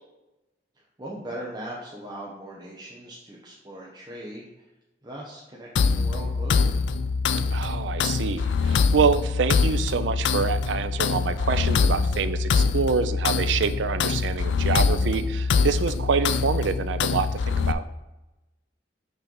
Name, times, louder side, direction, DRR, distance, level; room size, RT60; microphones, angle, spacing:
voice 1, 0.8-4.7 5.0-6.8, right 1 dB, 25° right, -5 dB, 0.8 m, -39 dB
sound 1, 5.8-17.7, left 5 dB, 85° left, 0.4 m, -24 dB
voice 2, 7.5-17.8, right 5 dB, 85° right, 11 dB, 0.4 m, -26 dB
5.9 x 3.3 x 5.3 m, 0.99 s
head